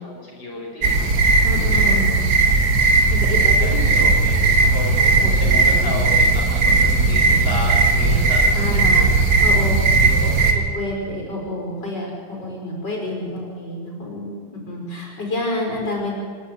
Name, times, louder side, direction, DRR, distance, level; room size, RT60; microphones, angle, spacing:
voice 1, 0.0-1.1 1.7-2.0 3.6-9.1 10.0-10.7, left 1 dB, 30° left, -3 dB, 5.0 m, -32 dB
sound 1, 0.8-10.5, right 3 dB, 55° right, 2.4 m, -17 dB
voice 2, 1.4-2.3 3.1-4.1 5.2-6.2 8.5-9.1 9.4-9.8 10.5-16.1, left 1 dB, 65° left, -1 dB, 5.6 m, -29 dB
27.0 x 11.0 x 9.2 m, 2.1 s
omnidirectional pair, 2.1 m